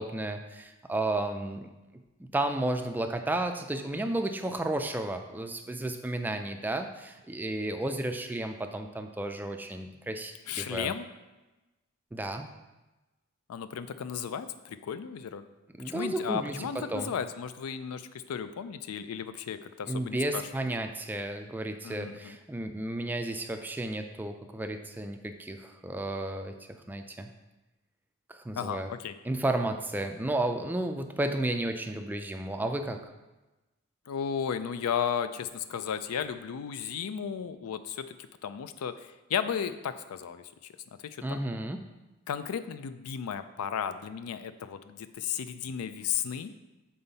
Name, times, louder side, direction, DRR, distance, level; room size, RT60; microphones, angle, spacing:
voice 1, 0.0-1.7 2.3-10.9 12.1-12.5 15.8-17.1 19.9-26.6 26.9-27.3 28.3-28.9 29.2-33.0 41.2-41.8, right 1 dB, 10° right, 6 dB, 0.3 m, -32 dB
voice 2, 10.5-11.1 13.5-15.4 15.8-20.4 21.8-22.4 28.6-29.2 34.1-38.1 38.4-40.5 41.0-41.4 42.3-46.5, left 7 dB, 85° left, 12 dB, 0.4 m, -34 dB
5.5 x 4.3 x 4.0 m, 1.1 s
head